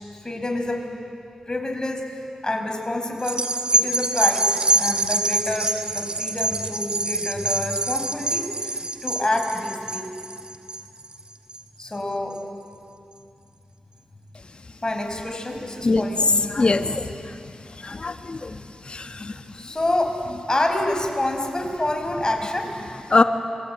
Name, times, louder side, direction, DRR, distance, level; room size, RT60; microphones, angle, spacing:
voice 1, 0.2-0.8 1.5-3.4 3.7-10.1 11.8-12.4 14.8-16.3 19.5-20.2 20.5-23.0, left 1 dB, 30° left, 3 dB, 5.5 m, -27 dB
sound 1, 3.2-11.9 12.4-12.5, right 2 dB, 40° right, 2.2 m, -25 dB
voice 2, 16.5-17.1 17.8-18.6 18.9-19.3 23.1-23.2, left 3 dB, 45° left, 7 dB, 1.4 m, -22 dB
28.5 x 23.0 x 9.1 m, 2.6 s
cardioid pair, 50°, 2 cm